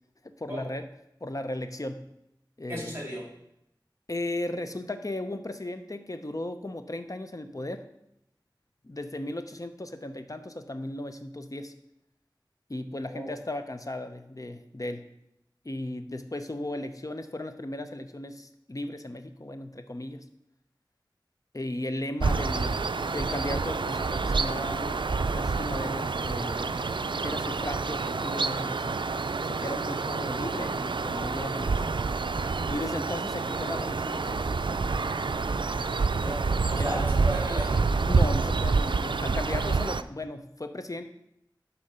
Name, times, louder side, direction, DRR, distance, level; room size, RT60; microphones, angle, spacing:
voice 1, 0.2-0.9 1.2-2.1 2.6-3.0 4.1-7.8 8.8-11.7 12.7-15.1 15.6-20.2 21.5-25.0 25.3-26.7 27.2-29.1 29.4-31.9 32.7-34.6 36.3-36.4 36.8-37.0 38.1-41.1, left 1 dB, 45° left, 8 dB, 0.8 m, -36 dB
voice 2, 2.7-3.3 13.1-13.3 36.1-38.0, equal, 30° right, -2 dB, 3.3 m, -36 dB
sound 1, 22.2-40.0, right 4 dB, 75° right, 0.3 m, -28 dB
11.5 x 4.3 x 5.6 m, 0.81 s
wide cardioid pair, 40°, 8 cm